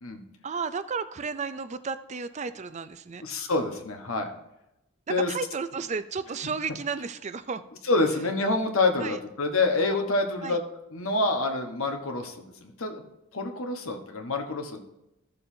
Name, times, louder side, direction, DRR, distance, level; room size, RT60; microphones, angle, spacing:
voice 1, 0.4-3.2 5.1-7.6 9.0-9.2 10.4-10.6, right 5 dB, 35° right, 12 dB, 0.4 m, -33 dB
voice 2, 3.2-4.3 5.1-5.3 7.8-10.6 10.9-13.0 13.3-14.8, left 2 dB, 75° left, 4 dB, 1.3 m, -27 dB
15.0 x 6.8 x 2.8 m, 0.88 s
head